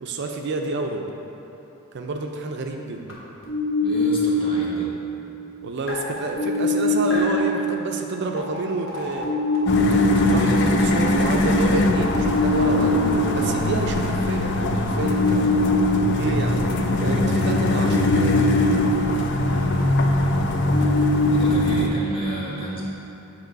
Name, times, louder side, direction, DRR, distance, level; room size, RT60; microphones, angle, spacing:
voice 1, 0.0-1.1 1.9-3.2 5.6-9.3 9.7-13.0 13.3-15.5 16.2-16.7 17.0-18.9, right 2 dB, 55° right, 3 dB, 0.4 m, -29 dB
sound 1, 3.1-3.2 3.4-4.8 5.9-7.6 8.4-8.6 8.9-21.9, left 1 dB, 80° left, 1.2 m, -23 dB
voice 2, 3.8-4.9 21.3-22.8, equal, 25° left, -6 dB, 1.1 m, -32 dB
sound 2, 9.7-21.9, left 2 dB, 55° left, 0.4 m, -23 dB
7.8 x 3.0 x 5.1 m, 2.9 s
head